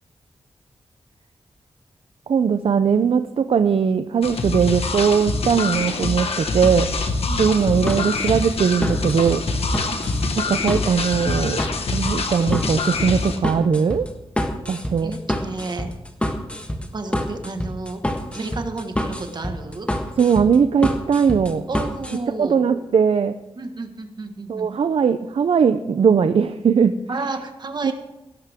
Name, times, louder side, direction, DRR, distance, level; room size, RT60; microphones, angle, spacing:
voice 1, 2.3-6.9 7.4-9.4 10.4-11.7 11.9-14.1 14.7-15.1 20.2-21.7 22.4-23.3 24.5-26.9 27.8-27.9, right 6 dB, 65° right, 10 dB, 0.5 m, -19 dB
sound 1, 4.2-13.4, left 3 dB, 75° left, 1.5 m, -25 dB
sound 2, 7.4-22.2, left 1 dB, 10° left, 1.6 m, -27 dB
voice 2, 14.9-15.9 16.9-18.0 18.3-19.9 21.7-22.6 23.6-24.7 27.1-27.9, right 3 dB, 45° right, 6 dB, 1.6 m, -31 dB
17.5 x 12.5 x 3.6 m, 0.97 s
wide cardioid pair, 125°, 10 cm